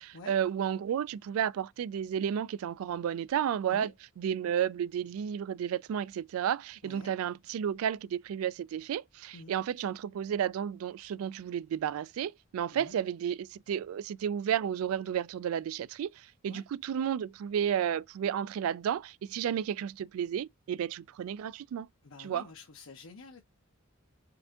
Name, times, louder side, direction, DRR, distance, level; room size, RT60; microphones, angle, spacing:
voice 1, 0.0-3.9 4.2-16.1 16.4-21.9 22.2-22.5, right 9 dB, 85° right, 0.3 m, -32 dB
voice 2, 6.8-7.1 9.3-9.5 12.7-13.0 16.5-16.6 22.0-23.4, left 3 dB, 70° left, 0.7 m, -49 dB
4.7 x 2.6 x 3.5 m
head